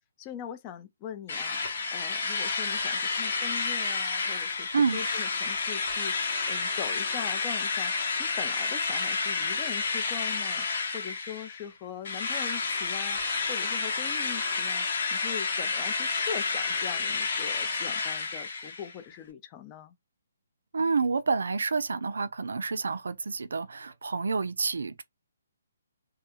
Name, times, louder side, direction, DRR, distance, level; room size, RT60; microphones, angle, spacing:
voice 1, 0.2-10.7 10.9-19.9, left 9 dB, 20° left, 0.4 m, -41 dB
Drill, 1.3-11.7 12.0-18.9, left 4 dB, 50° left, 0.8 m, -30 dB
voice 2, 20.7-25.0, right 4 dB, 85° right, 0.4 m, -28 dB
2.4 x 2.3 x 2.8 m
hypercardioid pair, 165°, 0 cm